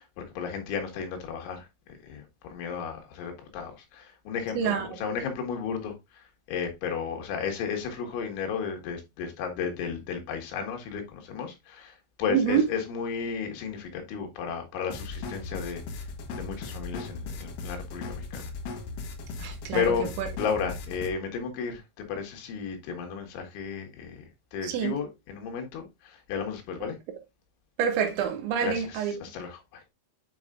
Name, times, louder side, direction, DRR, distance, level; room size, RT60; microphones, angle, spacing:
voice 1, 0.0-1.7 2.0-6.0 6.5-15.8 16.3-18.5 19.7-20.1 20.4-24.2 24.5-27.0 28.6-28.8 29.2-29.8, left 6 dB, 85° left, 4.3 m, -33 dB
voice 2, 4.6-4.9 12.3-12.7 19.4-20.3 24.6-25.0 27.8-29.2, right 8 dB, 85° right, 4.0 m, -27 dB
sound 1, 14.9-21.1, left 3 dB, 65° left, 2.4 m, -37 dB
9.3 x 5.7 x 2.5 m
omnidirectional pair, 5.2 m